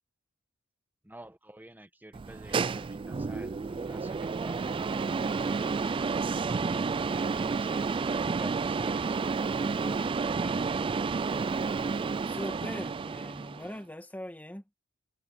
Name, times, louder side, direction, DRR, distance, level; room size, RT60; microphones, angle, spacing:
voice 1, 1.0-5.8 6.4-9.2 10.3-10.9, right 1 dB, 10° right, 1.4 m, -49 dB
sound 1, 2.1-13.8, right 4 dB, 25° right, 0.3 m, -30 dB
voice 2, 12.3-14.7, equal, 10° left, 1.5 m, -41 dB
head